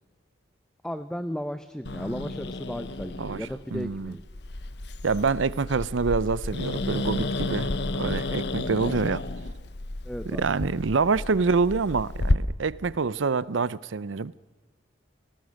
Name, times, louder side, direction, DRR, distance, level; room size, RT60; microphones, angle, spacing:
voice 1, 0.8-4.2 10.0-10.5, equal, 5° left, 0.6 m, -35 dB
Growling, 1.8-12.3, left 2 dB, 60° left, 0.9 m, -32 dB
voice 2, 3.2-4.1 5.0-9.2 10.3-14.3, right 4 dB, 85° right, 0.6 m, -26 dB
29.5 x 18.0 x 6.4 m
head